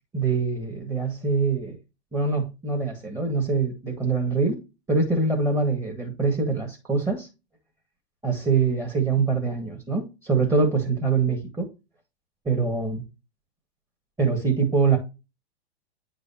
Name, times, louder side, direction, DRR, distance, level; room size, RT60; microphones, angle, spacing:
voice 1, 0.1-1.8 2.1-4.6 4.9-7.3 8.2-11.7 12.5-13.0 14.2-15.0, right 4 dB, 10° right, 1.9 m, -24 dB
9.5 x 5.0 x 2.9 m
hypercardioid pair, 130°, 33 cm